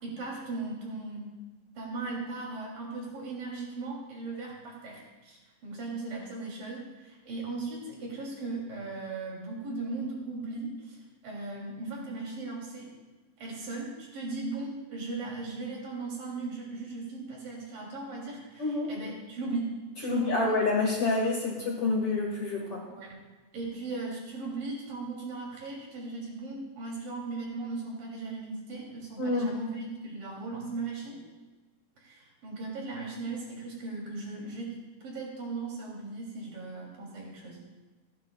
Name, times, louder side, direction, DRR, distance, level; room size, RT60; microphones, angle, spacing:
voice 1, 0.0-1.3 1.8-12.9 13.4-19.7 20.0-20.6 22.9-23.3 23.5-31.2 32.0-34.7 35.0-37.6, right 3 dB, 65° right, -3 dB, 4.7 m, -37 dB
voice 2, 18.6-18.9 20.0-22.8 29.2-29.5, left 3 dB, 45° left, -2 dB, 2.2 m, -28 dB
27.5 x 10.0 x 2.4 m, 1.3 s
omnidirectional pair, 4.3 m